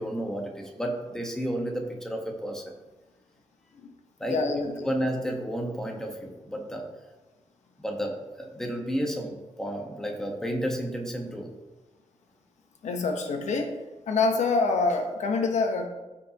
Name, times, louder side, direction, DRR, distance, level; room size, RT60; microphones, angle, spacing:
voice 1, 0.0-2.7 4.2-4.4 4.8-6.9 7.8-11.5, equal, 5° left, 0 dB, 1.3 m, -32 dB
voice 2, 4.3-4.9 12.8-13.7 14.1-15.9, left 3 dB, 80° left, 4 dB, 1.1 m, -26 dB
14.5 x 5.7 x 3.0 m, 1.2 s
wide cardioid pair, 165°, 12 cm